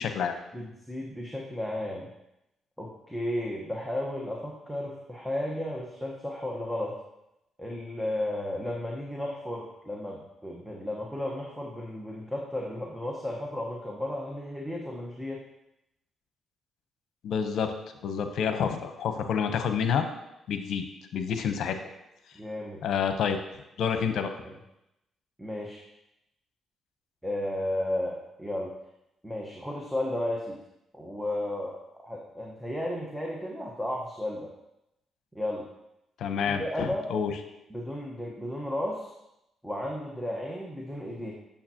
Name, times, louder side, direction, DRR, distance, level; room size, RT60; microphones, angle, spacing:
voice 1, 0.0-0.3 17.2-17.7 18.0-20.1 20.5-20.8 21.1-21.8 22.8-23.4 23.8-24.3 36.2-37.3, left 7 dB, 75° left, 7 dB, 0.9 m, -28 dB
voice 2, 0.5-2.1 2.8-7.0 7.6-15.4 22.3-22.8 24.4-24.5 25.4-25.8 27.2-28.7 29.2-30.6 30.9-31.8 32.0-34.5 35.3-35.6 36.5-37.1 37.7-39.1 39.6-41.3, left 1 dB, 5° right, -1 dB, 1.2 m, -33 dB
8.5 x 6.8 x 2.9 m, 0.87 s
cardioid pair, 90°, 0 cm